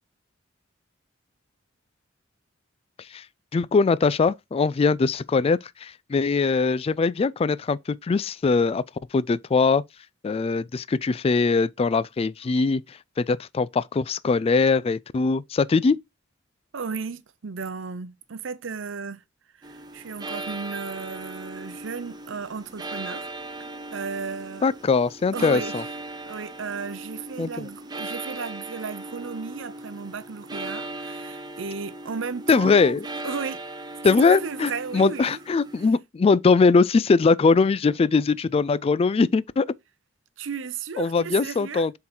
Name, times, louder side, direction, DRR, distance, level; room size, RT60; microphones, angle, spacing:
voice 1, 3.5-8.8 9.1-9.8 10.2-16.0 24.6-25.8 27.4-27.7 32.5-33.0 34.0-39.7 41.0-41.9, left 4 dB, 30° left, 0.3 m, -21 dB
voice 2, 16.7-19.2 19.6-23.3 23.6-24.7 25.3-25.8 26.1-33.6 34.1-35.4 40.4-41.9, right 5 dB, 80° right, 0.7 m, -34 dB
sound 1, 19.6-35.9, right 2 dB, 20° right, 0.7 m, -38 dB
7.4 x 3.9 x 4.4 m
head